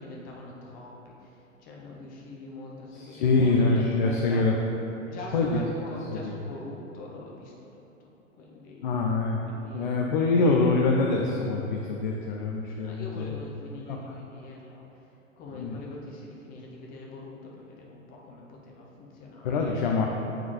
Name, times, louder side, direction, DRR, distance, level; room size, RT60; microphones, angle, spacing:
voice 1, 0.0-4.6 5.1-7.5 8.3-9.1 9.4-10.0 12.8-14.8 15.4-19.7, left 2 dB, 20° left, -2 dB, 0.8 m, -43 dB
voice 2, 3.0-4.5 5.3-5.6 6.1-6.3 8.8-9.4 9.7-13.4 13.9-14.1 15.5-15.8 19.4-20.1, left 3 dB, 40° left, 0 dB, 0.4 m, -25 dB
8.6 x 3.6 x 3.1 m, 2.9 s
figure-of-eight pair, 105°, 39 cm